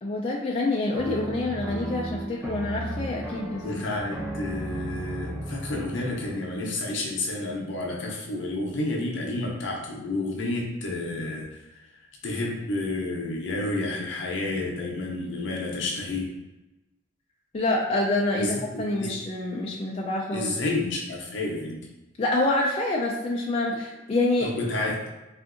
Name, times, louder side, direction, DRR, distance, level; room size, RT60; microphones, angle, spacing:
voice 1, 0.0-3.8 17.5-20.5 22.2-24.5, left 2 dB, 30° left, -3 dB, 0.3 m, -27 dB
sound 1, 0.9-6.5, right 1 dB, 10° right, 0.7 m, -35 dB
voice 2, 3.6-11.6 12.2-16.3 18.3-19.1 20.3-21.9 24.4-25.1, left 2 dB, 70° left, -1 dB, 0.6 m, -30 dB
3.6 x 2.5 x 2.4 m, 1.0 s
head